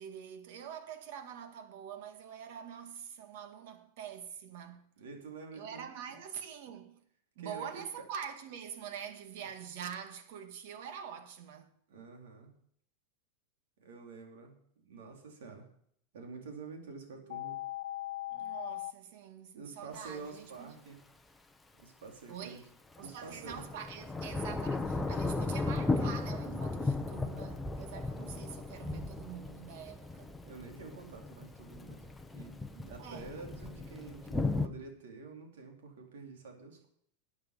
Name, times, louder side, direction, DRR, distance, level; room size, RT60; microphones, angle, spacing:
voice 1, 0.0-4.9 5.5-7.0 7.4-11.7 18.3-20.8 22.3-22.7 23.0-30.4 33.0-33.3, right 8 dB, 60° right, 1.9 m, -45 dB
voice 2, 5.0-6.2 7.4-7.8 11.9-12.5 13.8-15.7 16.1-17.6 19.5-21.0 21.8-22.6 23.0-23.6 30.4-36.9, right 4 dB, 90° right, 3.9 m, -48 dB
sound 1, 17.3-18.9, left 15 dB, 85° left, 0.6 m, -39 dB
Thunder / Rain, 19.9-20.0 23.0-34.7, left 3 dB, 5° left, 0.8 m, -36 dB
13.5 x 8.7 x 5.3 m
supercardioid pair, 160°, 0 cm